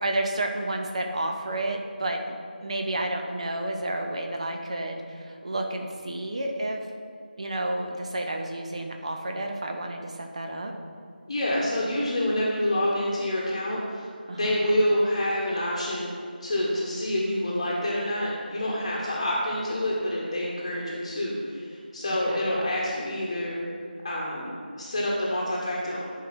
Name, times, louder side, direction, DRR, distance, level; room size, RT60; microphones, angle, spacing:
voice 1, 0.0-2.4 2.6-6.8 7.4-10.7 14.3-14.6 22.3-22.4, right 1 dB, 40° right, 3 dB, 0.9 m, -31 dB
voice 2, 11.3-16.1 16.4-23.6 24.0-26.0, left 1 dB, 30° left, -6 dB, 1.2 m, -27 dB
11.0 x 4.8 x 5.6 m, 2.4 s
figure-of-eight pair, 165°, 5 cm